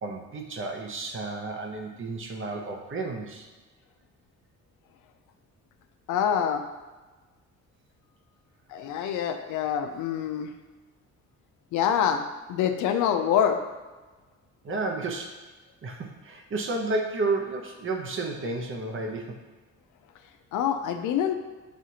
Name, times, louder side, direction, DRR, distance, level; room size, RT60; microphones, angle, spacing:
voice 1, 0.0-3.5 14.6-15.4 15.8-19.4, right 3 dB, 45° right, 2 dB, 0.7 m, -31 dB
voice 2, 6.1-6.6 8.7-10.5 11.7-12.2 12.5-13.6 20.5-21.3, left 8 dB, 80° left, 7 dB, 0.5 m, -25 dB
6.2 x 2.4 x 2.8 m, 1.3 s
cardioid pair, 90°, 30 cm